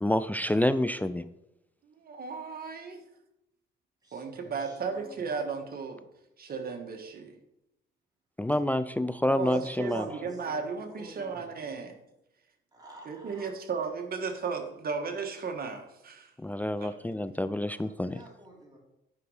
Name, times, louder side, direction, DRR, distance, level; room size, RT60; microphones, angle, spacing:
voice 1, 0.0-1.2 8.4-10.1 16.4-18.2, left 1 dB, 10° left, 13 dB, 0.3 m, -28 dB
voice 2, 1.9-3.0 4.1-6.0 6.4-7.4 9.2-11.9 13.1-16.3 16.8-17.0, right 5 dB, 50° right, 5 dB, 1.5 m, -35 dB
voice 3, 4.0-5.2 9.3-11.5 12.7-13.5 17.7-18.8, right 1 dB, 20° right, -2 dB, 3.3 m, -50 dB
9.5 x 5.3 x 4.9 m, 0.86 s
cardioid pair, 90°, 20 cm